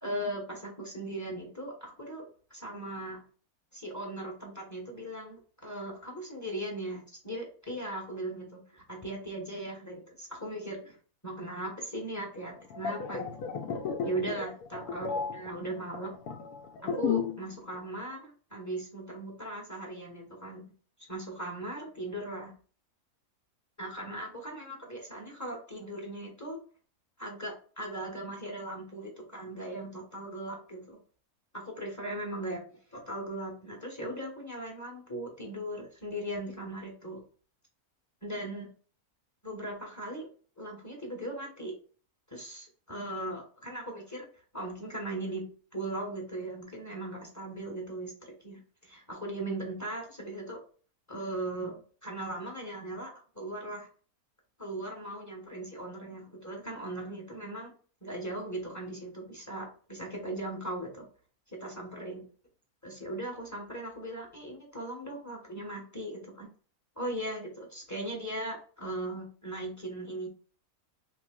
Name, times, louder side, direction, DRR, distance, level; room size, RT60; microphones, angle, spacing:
voice 1, 0.0-3.2 3.7-11.0 11.2-13.3 14.0-16.2 16.8-20.7 21.1-22.5 23.8-26.6 27.2-31.0 31.5-37.2 38.2-38.7 39.4-40.3 40.6-41.7 42.3-44.3 44.5-50.6 51.1-53.9 54.6-57.7 58.0-61.1 61.5-62.2 62.8-66.5 67.0-70.3, right 1 dB, 15° left, 0 dB, 0.9 m, -38 dB
sound 1, 12.6-17.5 17.7-18.0, left 6 dB, 85° left, 1.1 m, -34 dB
4.4 x 3.0 x 2.2 m, 0.40 s
omnidirectional pair, 1.6 m